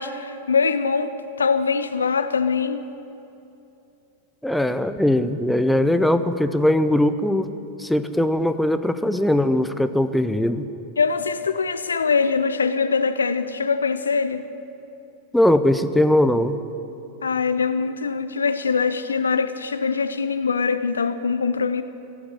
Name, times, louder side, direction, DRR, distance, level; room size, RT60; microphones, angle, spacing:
voice 1, 0.0-2.8 11.0-14.4 17.2-21.8, left 5 dB, 75° left, 0.6 m, -23 dB
voice 2, 4.4-7.5 7.8-10.7 15.3-16.6, left 1 dB, 5° left, 0.6 m, -20 dB
15.5 x 8.8 x 9.7 m
figure-of-eight pair, 90°, 0 cm